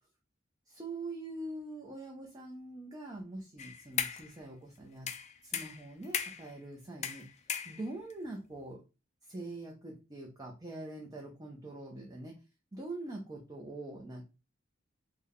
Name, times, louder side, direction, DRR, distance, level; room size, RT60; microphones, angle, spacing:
voice 1, 0.7-5.1 5.4-7.3 7.6-8.8 9.2-12.4 12.7-14.2, right 2 dB, 20° right, 0 dB, 0.6 m, -43 dB
sound 1, 3.6-4.3 5.1-6.5 7.0-8.1, left 8 dB, 35° left, 0.3 m, -37 dB
3.3 x 2.2 x 3.7 m, 0.29 s
head